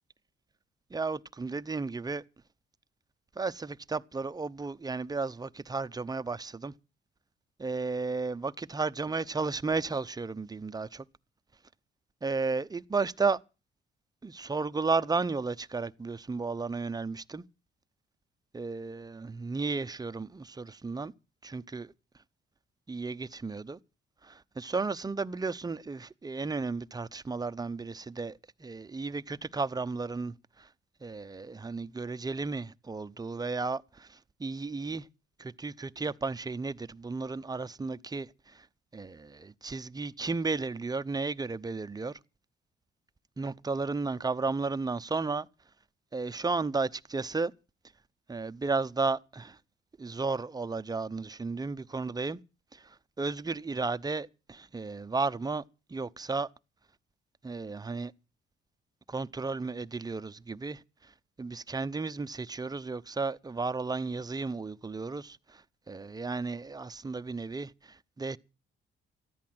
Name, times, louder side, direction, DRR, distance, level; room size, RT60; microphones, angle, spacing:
voice 1, 0.9-2.2 3.4-6.7 7.6-11.0 12.2-13.4 14.2-17.4 18.5-21.1 21.4-21.9 22.9-23.8 24.2-30.7 31.0-35.1 35.4-38.7 38.9-42.2 43.4-45.5 46.1-47.5 48.3-49.6 50.0-52.4 52.7-55.6 55.9-56.5 57.4-58.1 59.1-61.1 61.4-68.4, right 4 dB, 20° right, 0.7 m, -33 dB
14.5 x 10.5 x 7.6 m
cardioid pair, 90°, 20 cm